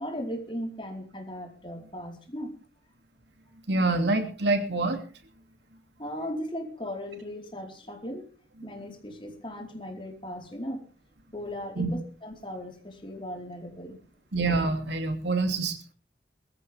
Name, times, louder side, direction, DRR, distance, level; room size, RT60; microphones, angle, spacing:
voice 1, 0.0-2.5 6.0-8.3 8.6-10.8 11.3-14.0, equal, 30° left, 2 dB, 4.4 m, -37 dB
voice 2, 3.7-5.0 11.8-11.9 14.3-15.9, right 3 dB, 85° right, 7 dB, 2.7 m, -26 dB
22.0 x 14.5 x 3.5 m, 0.38 s
head